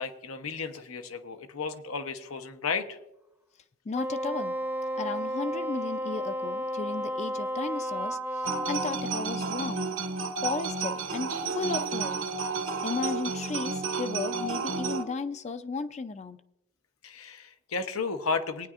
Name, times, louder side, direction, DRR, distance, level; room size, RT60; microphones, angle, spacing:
voice 1, 0.0-3.0 17.0-18.7, left 4 dB, 85° left, 7 dB, 0.9 m, -33 dB
voice 2, 3.9-4.6 5.0-9.9 10.4-12.2 12.8-16.4, left 4 dB, 35° left, 10 dB, 0.4 m, -34 dB
Wind instrument woodwind instrument, 3.9-9.0, equal, 10° right, 0.6 m, -32 dB
sound 1, 8.4-15.0, right 4 dB, 70° right, 1.1 m, -31 dB
19.5 x 9.5 x 2.5 m, 0.90 s
head